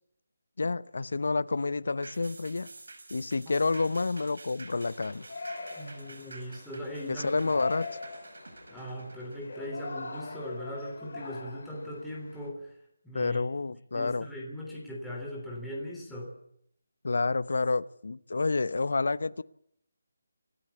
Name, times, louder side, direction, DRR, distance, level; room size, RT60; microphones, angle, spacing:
voice 1, 0.6-2.7 3.1-5.3 7.1-7.9 13.1-14.3 17.0-19.4, left 3 dB, 65° left, 0.9 m, -29 dB
sound 1, 2.0-10.7 11.1-11.2, right 2 dB, 80° right, 5.9 m, -49 dB
Yell, 4.8-12.5, left 3 dB, 50° left, 6.2 m, -42 dB
voice 2, 5.7-7.3 8.7-12.8 13.0-13.4 13.9-16.3, equal, ahead, 3.3 m, -39 dB
27.0 x 12.0 x 8.4 m
hypercardioid pair, 175°, 0 cm